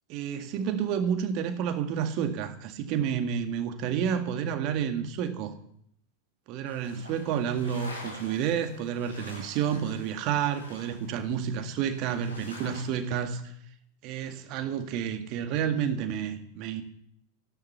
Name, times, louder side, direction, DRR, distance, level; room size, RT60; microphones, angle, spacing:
voice 1, 0.1-5.5 6.5-13.4 14.0-16.8, right 8 dB, 40° right, 8 dB, 2.0 m, -30 dB
sound 1, 6.7-13.0, left 1 dB, 75° left, 6.5 m, -47 dB
15.0 x 11.5 x 7.1 m, 0.68 s
figure-of-eight pair, 90°, 0 cm